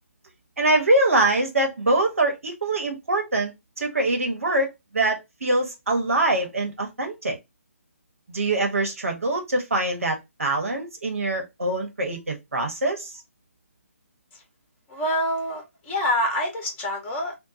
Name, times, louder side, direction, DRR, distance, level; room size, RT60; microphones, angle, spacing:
voice 1, 0.6-7.4 8.3-13.2, right 2 dB, 70° right, 1.0 m, -24 dB
voice 2, 14.9-17.3, equal, 15° left, 0.8 m, -26 dB
2.3 x 2.1 x 3.9 m
figure-of-eight pair, 140°, 8 cm